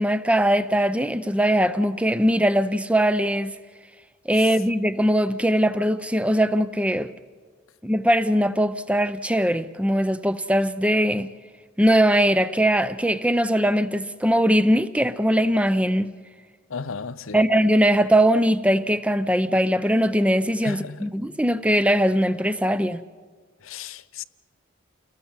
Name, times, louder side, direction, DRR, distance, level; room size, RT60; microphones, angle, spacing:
voice 1, 0.0-3.5 4.3-7.1 7.8-11.3 11.8-16.1 17.3-23.0, equal, 5° right, 0.6 m, -21 dB
voice 2, 16.7-17.4 20.6-21.1 23.6-24.2, left 5 dB, 80° left, 0.7 m, -34 dB
29.5 x 19.0 x 7.3 m
head